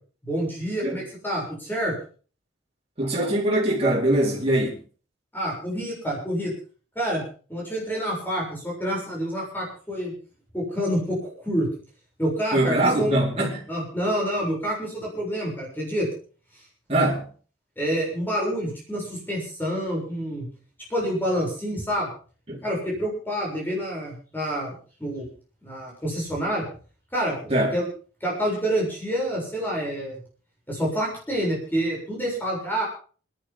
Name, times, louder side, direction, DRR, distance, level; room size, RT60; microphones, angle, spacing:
voice 1, 0.2-1.9 5.3-6.5 7.0-7.2 7.5-10.1 10.5-11.7 12.2-13.2 13.7-16.1 17.8-20.5 20.9-22.1 22.6-25.2 25.6-26.7 27.1-27.9 28.2-30.2 30.7-32.9, equal, 10° left, 7.3 m, -27 dB
voice 2, 3.0-4.8 12.5-13.6 16.9-17.2 22.5-22.6 27.5-27.8, right 1 dB, 30° right, 4.2 m, -22 dB
28.0 x 11.5 x 3.7 m
head